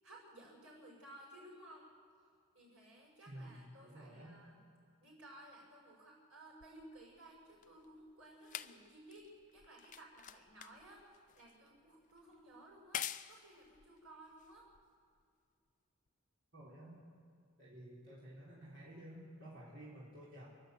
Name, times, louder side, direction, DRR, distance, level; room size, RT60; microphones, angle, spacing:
voice 1, 0.0-1.9 2.5-4.6 5.0-14.7, right 1 dB, 90° right, -3 dB, 6.9 m, -57 dB
voice 2, 3.3-4.4 16.5-17.0 17.6-20.5, right 1 dB, 60° right, -7 dB, 4.0 m, -52 dB
sound 1, 6.6-15.2 16.1-16.2, left 10 dB, 35° left, 0.5 m, -49 dB
29.0 x 11.5 x 8.2 m, 2.3 s
head